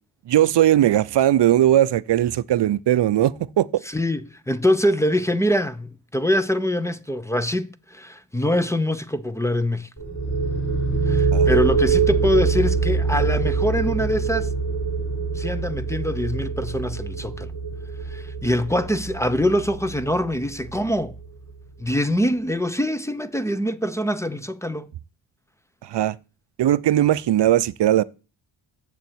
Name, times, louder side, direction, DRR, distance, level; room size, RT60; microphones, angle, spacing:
voice 1, 0.3-3.8 11.3-11.5 25.8-26.2 26.6-28.0, right 12 dB, 55° right, 0.6 m, -19 dB
voice 2, 3.9-9.9 11.1-14.5 15.4-17.5 18.1-21.1 21.8-24.9, equal, 5° left, 0.7 m, -24 dB
sound 1, 10.0-21.5, right 4 dB, 25° left, 3.5 m, -24 dB
8.0 x 7.1 x 7.9 m
cardioid pair, 95°, 50 cm